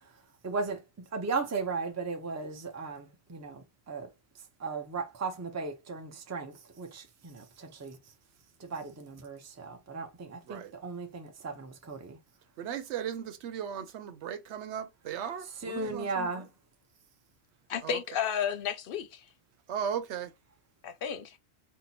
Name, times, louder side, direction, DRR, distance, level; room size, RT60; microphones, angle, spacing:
voice 1, 0.4-0.8 1.1-4.1 4.6-8.0 8.6-12.2 15.6-16.5, right 4 dB, 20° right, 0.5 m, -36 dB
voice 2, 12.6-16.5 17.8-18.0 19.7-20.3, right 8 dB, 90° right, 0.9 m, -37 dB
voice 3, 17.7-19.3 20.8-21.4, left 8 dB, 60° left, 0.7 m, -32 dB
2.8 x 2.1 x 3.9 m
omnidirectional pair, 1.1 m